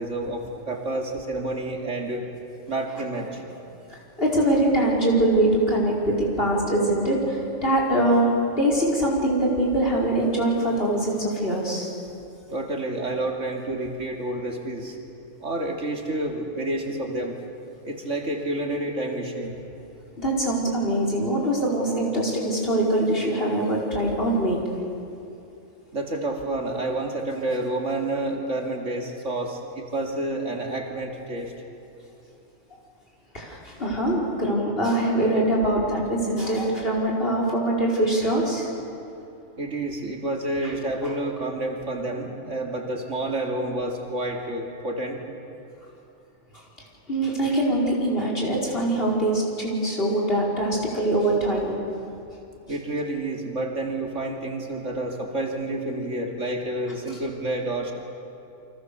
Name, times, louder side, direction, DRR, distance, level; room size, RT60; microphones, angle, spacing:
voice 1, 0.0-2.3 2.7-3.4 12.5-15.0 15.4-17.4 17.8-19.6 25.9-31.5 39.6-45.2 52.7-57.9, right 2 dB, 65° right, 1 dB, 2.9 m, -29 dB
voice 2, 3.9-8.3 8.6-11.9 20.2-24.6 33.3-38.7 41.0-41.1 47.1-51.8, right 1 dB, 45° left, -2 dB, 5.1 m, -23 dB
29.5 x 25.0 x 6.9 m, 2.7 s
omnidirectional pair, 1.3 m